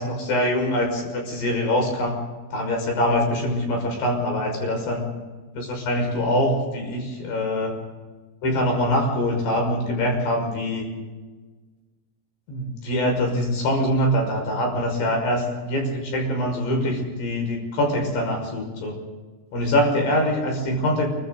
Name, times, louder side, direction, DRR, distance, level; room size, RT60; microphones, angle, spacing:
voice 1, 0.0-2.2 2.5-5.0 5.6-7.8 8.4-10.9 12.5-19.0 19.5-21.1, left 1 dB, 90° left, 2 dB, 8.1 m, -24 dB
28.0 x 25.0 x 4.1 m, 1.3 s
omnidirectional pair, 4.6 m